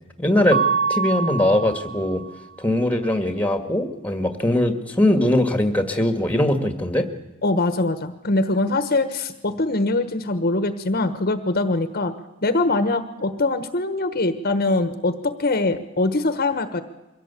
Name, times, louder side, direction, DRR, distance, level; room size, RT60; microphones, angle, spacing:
voice 1, 0.2-0.6 0.9-2.2 2.6-7.1, left 1 dB, 5° left, 8 dB, 1.8 m, -21 dB
Mallet percussion, 0.5-2.3, right 6 dB, 25° right, 1.2 m, -25 dB
voice 2, 7.4-12.1 12.4-16.8, left 2 dB, 45° left, 11 dB, 1.2 m, -23 dB
23.5 x 16.5 x 8.3 m, 1.0 s
head